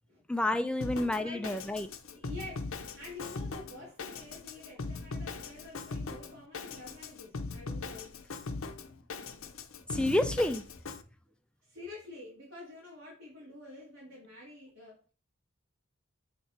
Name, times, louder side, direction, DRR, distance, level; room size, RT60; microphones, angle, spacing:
voice 1, 0.3-1.9 9.9-10.6, left 1 dB, 5° left, 0.3 m, -29 dB
Drum kit, 0.8-11.0, left 3 dB, 75° left, 0.6 m, -40 dB
voice 2, 1.2-1.6 2.1-8.1 11.6-15.1, left 2 dB, 50° right, 2.3 m, -48 dB
7.2 x 3.4 x 4.3 m
head